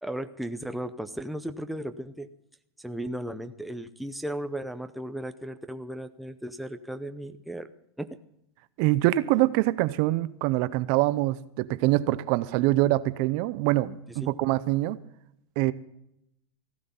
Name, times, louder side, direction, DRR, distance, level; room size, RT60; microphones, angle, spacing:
voice 1, 0.0-2.3 2.8-7.7 8.0-8.2 14.1-14.3, right 1 dB, ahead, 0.6 m, -35 dB
voice 2, 8.8-15.0 15.6-15.7, right 17 dB, 45° right, 0.6 m, -24 dB
15.5 x 12.0 x 5.6 m
supercardioid pair, 135°, 14 cm